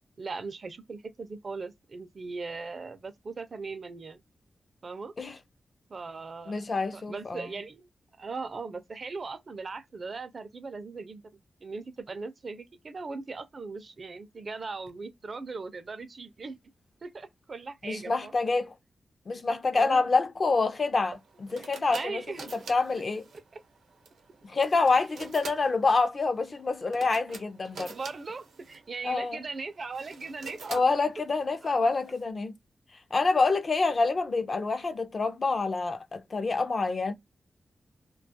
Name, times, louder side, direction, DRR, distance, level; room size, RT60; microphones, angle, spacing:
voice 1, 0.2-4.2 4.8-5.1 5.9-6.6 6.9-7.9 8.2-11.2 11.6-16.6 17.0-18.3 19.7-20.2 21.9-22.4 23.5-23.6 25.4-25.5 27.9-30.8, right 4 dB, 50° right, 0.4 m, -39 dB
voice 2, 6.5-7.5 17.8-18.7 19.3-22.2 22.7-23.2 24.5-28.0 29.0-29.4 30.7-32.5 33.1-37.1, left 3 dB, 50° left, 0.4 m, -27 dB
sound 1, 21.0-32.2, right 4 dB, 85° right, 0.7 m, -47 dB
2.3 x 2.3 x 2.6 m
wide cardioid pair, 90°, 0 cm